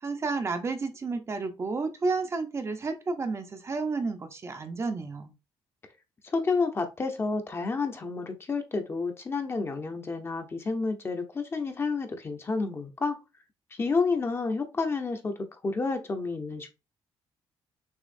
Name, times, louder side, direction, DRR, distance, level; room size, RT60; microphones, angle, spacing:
voice 1, 0.0-5.3, right 4 dB, 30° right, 0.7 m, -31 dB
voice 2, 6.2-13.2 13.7-16.8, left 4 dB, 25° left, 0.8 m, -30 dB
6.3 x 3.0 x 2.6 m
cardioid pair, 145°, 9 cm